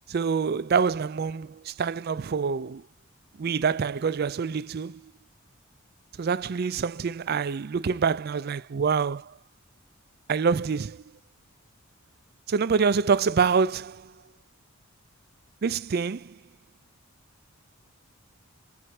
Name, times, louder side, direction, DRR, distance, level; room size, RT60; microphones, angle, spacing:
voice 1, 0.1-2.8 3.4-5.0 6.2-9.3 10.3-11.0 12.5-14.1 15.6-16.4, right 5 dB, 45° right, 0.4 m, -26 dB
5.6 x 4.1 x 4.8 m
head